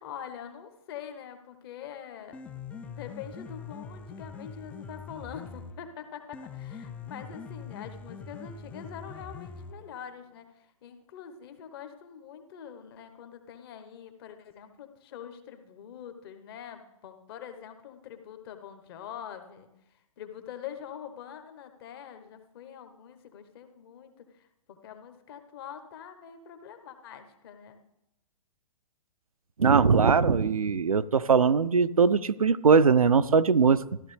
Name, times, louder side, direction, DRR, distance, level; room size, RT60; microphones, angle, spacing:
voice 1, 0.0-2.4 2.9-19.7 20.2-27.8, left 8 dB, 45° left, 1.2 m, -44 dB
Piano, 2.1-10.1, left 5 dB, 5° left, 0.4 m, -43 dB
voice 2, 29.6-33.8, right 5 dB, 80° right, 0.4 m, -21 dB
14.0 x 12.5 x 3.3 m
figure-of-eight pair, 115°, 18 cm